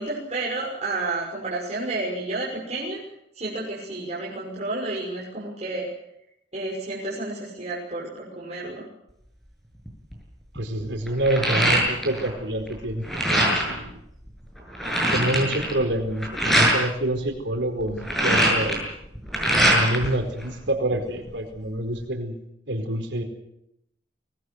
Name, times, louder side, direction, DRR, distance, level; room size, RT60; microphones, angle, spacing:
voice 1, 0.0-3.0 3.3-5.9 6.5-8.9, right 2 dB, 40° right, -5 dB, 6.2 m, -31 dB
sound 1, 9.8-10.1 10.5-12.3 12.6-13.8 14.3-14.4 14.6-16.8 17.8-20.1 20.4-21.3, right 1 dB, ahead, 7.6 m, -22 dB
voice 2, 10.5-14.0 15.1-18.9 19.7-22.4 22.7-23.2, right 1 dB, 80° right, 4 dB, 4.5 m, -27 dB
24.0 x 19.5 x 8.0 m, 0.80 s
head